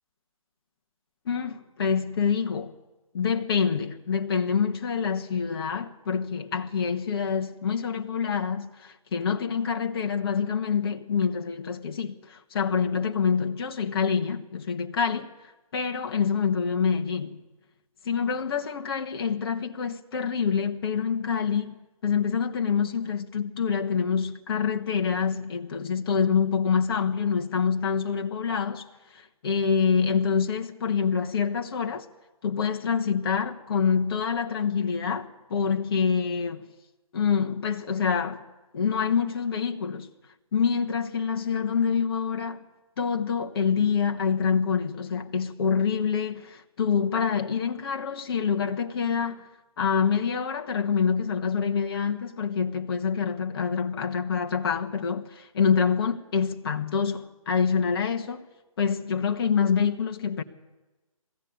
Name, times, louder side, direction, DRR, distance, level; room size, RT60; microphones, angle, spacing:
voice 1, 1.2-2.7 3.1-15.3 15.7-17.4 18.0-32.0 32.4-36.7 37.1-38.4 38.7-40.1 40.5-42.6 43.0-49.5 49.8-58.4 58.8-60.4, left 6 dB, 45° left, 1.6 m, -26 dB
20.5 x 15.5 x 9.5 m
hypercardioid pair, 155°, 18 cm